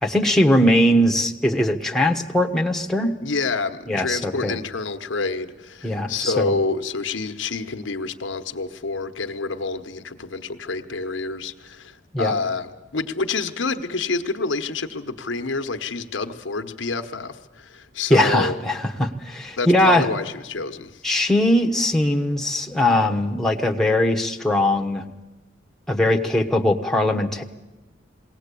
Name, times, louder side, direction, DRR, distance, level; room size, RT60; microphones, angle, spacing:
voice 1, 0.0-3.2 3.9-4.6 5.8-6.5 12.1-12.3 18.1-20.1 21.0-25.0 25.9-27.4, left 1 dB, ahead, 1.1 m, -20 dB
voice 2, 3.2-18.6 19.6-21.0, left 3 dB, 80° left, 1.1 m, -28 dB
20.5 x 18.0 x 8.3 m
head